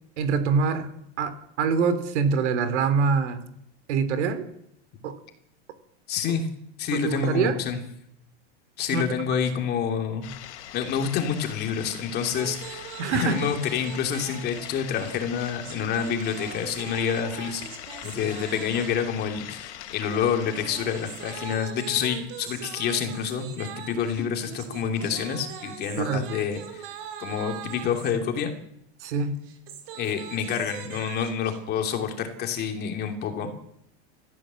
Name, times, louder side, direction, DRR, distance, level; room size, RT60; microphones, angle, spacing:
voice 1, 0.2-0.9 1.2-3.4 3.9-4.5 5.0-5.2 6.9-7.6 8.9-9.0 13.0-13.4 26.0-26.3 29.0-29.4, right 5 dB, 80° right, 11 dB, 3.2 m, -24 dB
voice 2, 6.1-6.5 6.8-7.8 8.8-10.3 10.7-17.6 18.0-26.9 27.2-28.5 29.9-33.5, left 7 dB, 30° left, 4 dB, 2.9 m, -28 dB
sound 1, 10.2-21.6, left 12 dB, 75° left, 3.3 m, -42 dB
sound 2, 12.3-19.1 20.0-28.1 29.3-31.6, right 9 dB, 55° right, 4.1 m, -41 dB
28.5 x 15.0 x 7.7 m, 0.75 s
supercardioid pair, 170°, 34 cm